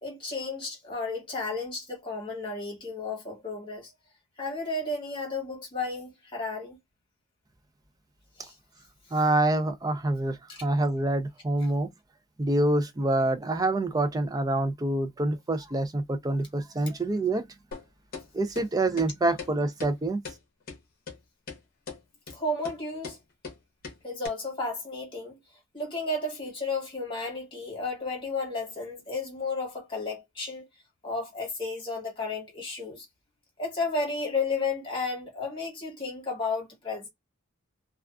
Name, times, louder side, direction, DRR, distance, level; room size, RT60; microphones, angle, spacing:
voice 1, 0.0-3.9 4.4-6.8 8.4-8.5 10.5-10.6 22.3-23.2 24.0-25.4 25.7-30.7 31.0-33.1 33.6-37.1, left 3 dB, 25° left, 1.2 m, -33 dB
voice 2, 9.1-11.9 12.4-17.5 18.3-20.2, right 2 dB, 15° right, 0.3 m, -26 dB
sound 1, 17.7-17.8 18.1-18.3 18.6-18.7 19.0-19.1 19.4-19.5 19.8-19.9 20.2-20.4 20.7-20.8 21.1-21.2 21.5-21.6 21.9-22.0 22.3-22.4 22.6-22.8 23.0-23.2 23.4-23.6 23.8-24.0 24.2-24.3, left 5 dB, 45° left, 0.8 m, -39 dB
2.3 x 2.3 x 2.3 m
head